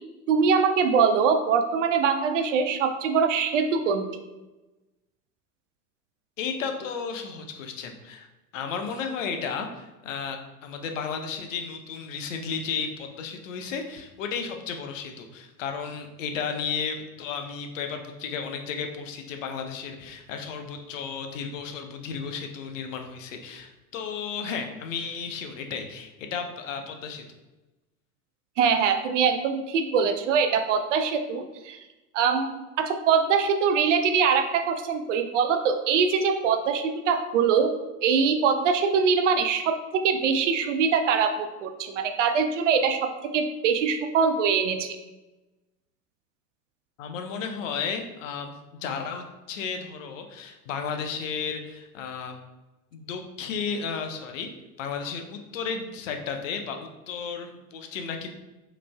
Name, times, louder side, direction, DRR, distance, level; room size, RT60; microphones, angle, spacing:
voice 1, 0.3-4.1 28.6-31.8 32.1-37.7 38.0-44.9, right 6 dB, 50° right, 7 dB, 0.5 m, -23 dB
voice 2, 6.4-8.3 8.5-27.2 47.0-48.5 48.8-52.4 52.9-54.5 54.8-58.3, left 6 dB, 55° left, 5 dB, 0.7 m, -33 dB
4.9 x 3.1 x 2.2 m, 1.1 s
figure-of-eight pair, 85°, 47 cm